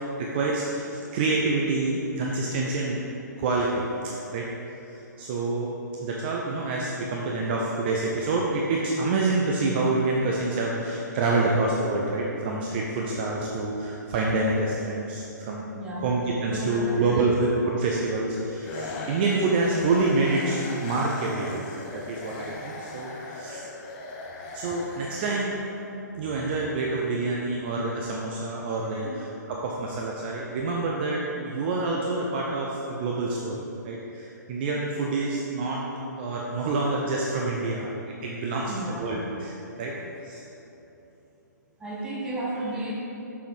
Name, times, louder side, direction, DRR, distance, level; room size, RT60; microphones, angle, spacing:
voice 1, 0.2-3.0 3.4-3.9 4.3-4.5 5.2-15.6 16.0-23.7 24.5-25.6 26.2-35.8 36.2-40.0 40.2-40.4, right 3 dB, 30° right, -2 dB, 0.7 m, -27 dB
voice 2, 15.7-16.2 16.5-17.3 29.0-29.2 38.7-39.4 41.8-42.9, right 1 dB, 10° right, -5 dB, 1.2 m, -33 dB
sound 1, 18.6-25.8, left 2 dB, 30° left, 0.9 m, -39 dB
6.5 x 5.7 x 4.7 m, 3.0 s
figure-of-eight pair, 125°, 10 cm